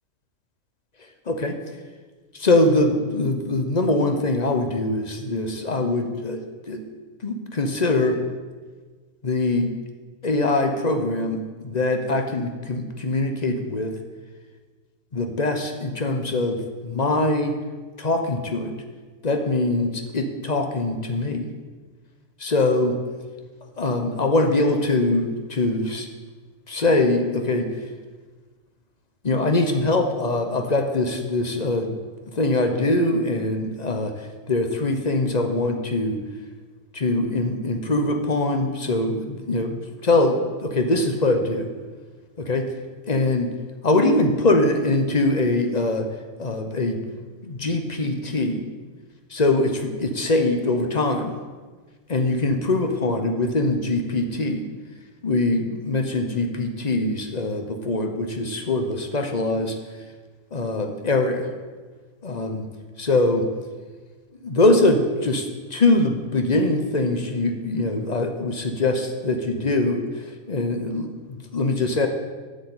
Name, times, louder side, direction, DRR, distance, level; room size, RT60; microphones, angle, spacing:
voice 1, 1.3-1.6 2.3-6.4 6.7-6.8 7.2-8.2 9.2-9.7 10.2-13.9 15.1-17.5 18.0-18.7 19.2-21.5 22.4-23.0 23.8-26.1 26.7-27.7 29.2-31.9 32.3-34.1 34.5-36.2 36.9-41.7 42.4-42.7 43.1-43.5 43.8-46.1 46.4-47.2 47.4-48.6 49.3-51.3 52.1-54.6 55.2-59.7 60.5-61.5 62.2-62.6 63.0-63.5 64.4-70.0 70.5-72.1, left 2 dB, 35° left, 5 dB, 0.8 m, -22 dB
8.2 x 6.6 x 8.4 m, 1.4 s
omnidirectional pair, 1.8 m